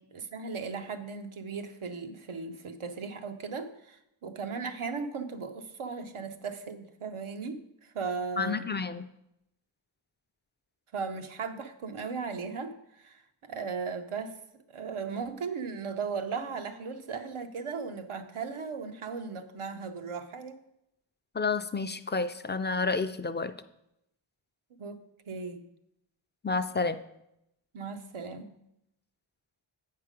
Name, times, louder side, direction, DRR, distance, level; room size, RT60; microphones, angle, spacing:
voice 1, 0.1-8.7 10.9-14.4 14.7-20.6 24.8-25.6 27.7-28.5, right 5 dB, 90° right, 7 dB, 0.8 m, -37 dB
voice 2, 8.4-9.0 21.3-23.5 26.4-27.0, left 4 dB, 25° left, 11 dB, 0.3 m, -30 dB
8.1 x 5.7 x 5.1 m, 0.83 s
wide cardioid pair, 80°, 48 cm